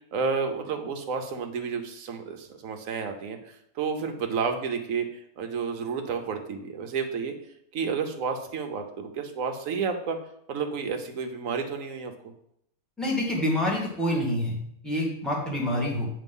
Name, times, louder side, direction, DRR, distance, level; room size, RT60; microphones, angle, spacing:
voice 1, 0.1-7.3 7.7-10.2 10.5-12.1, right 5 dB, 60° right, 6 dB, 1.1 m, -31 dB
voice 2, 13.0-14.6 14.8-16.1, left 1 dB, ahead, -5 dB, 1.9 m, -27 dB
8.1 x 3.3 x 5.3 m, 0.74 s
omnidirectional pair, 1.6 m